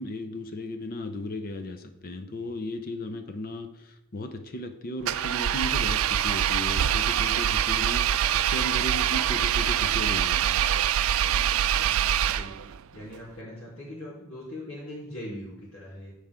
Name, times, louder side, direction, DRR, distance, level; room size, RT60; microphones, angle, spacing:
voice 1, 0.0-10.7, left 1 dB, 45° left, 8 dB, 0.7 m, -36 dB
Engine, 5.0-12.8, right 10 dB, 70° right, 0.4 m, -24 dB
voice 2, 11.8-12.5 12.9-16.1, left 1 dB, 85° left, -10 dB, 3.0 m, -41 dB
14.5 x 4.9 x 3.6 m, 0.82 s
head